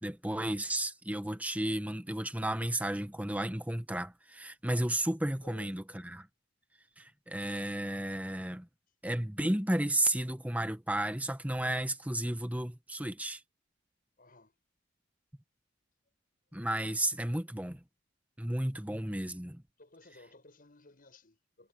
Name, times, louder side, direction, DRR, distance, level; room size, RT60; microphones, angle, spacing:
voice 1, 0.0-6.3 7.0-8.7 9.0-13.4 16.5-17.8 18.4-19.6, right 1 dB, 10° right, 1.4 m, -33 dB
voice 2, 5.4-5.7 14.2-14.5 19.8-21.7, left 2 dB, 50° left, 7.0 m, -57 dB
head